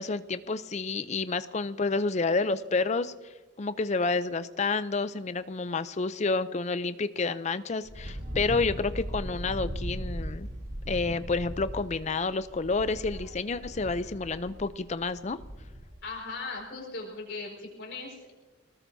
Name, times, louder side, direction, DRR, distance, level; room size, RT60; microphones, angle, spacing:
voice 1, 0.0-3.1 3.6-10.5 10.9-15.4, left 3 dB, 35° left, 13 dB, 0.5 m, -29 dB
Wind, 7.8-16.0, equal, 50° right, 2.9 m, -38 dB
voice 2, 16.0-18.3, left 3 dB, 55° left, -1 dB, 5.0 m, -38 dB
24.5 x 19.5 x 2.7 m, 1.3 s
head